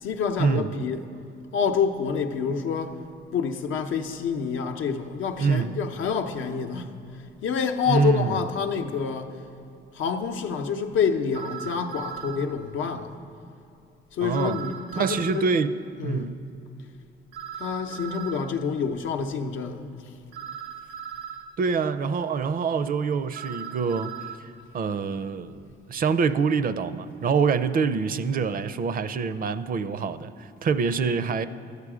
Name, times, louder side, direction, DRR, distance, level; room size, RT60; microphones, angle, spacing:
voice 1, 0.0-1.0 1.5-3.0 3.3-6.9 7.4-9.4 9.9-13.2 14.1-15.5 16.0-16.4 17.6-20.1, left 6 dB, 80° left, 0.7 m, -27 dB
voice 2, 5.4-5.7 7.9-8.4 14.2-14.6 15.0-15.7 16.0-16.4 21.6-24.1 24.7-31.5, right 5 dB, 45° right, 0.5 m, -25 dB
sound 1, 11.3-12.4 14.3-15.5 17.3-18.5 20.3-21.5 23.3-24.4, right 8 dB, 85° right, 0.9 m, -38 dB
12.5 x 8.2 x 4.9 m
cardioid pair, 90°, 20 cm